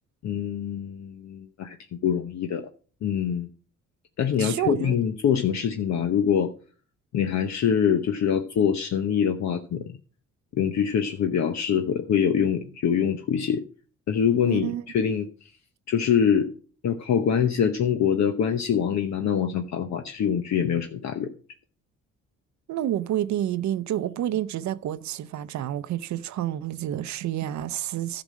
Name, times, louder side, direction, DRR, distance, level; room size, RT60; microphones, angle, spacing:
voice 1, 0.2-1.8 2.0-2.7 3.0-3.5 4.2-6.5 7.1-9.8 10.5-13.6 14.1-15.3 15.9-16.5 16.8-21.3, left 8 dB, 65° left, 1.0 m, -24 dB
voice 2, 4.4-5.0 14.5-14.8 22.7-28.2, right 12 dB, 70° right, 0.6 m, -29 dB
11.5 x 6.1 x 6.3 m
cardioid pair, 90°, 30 cm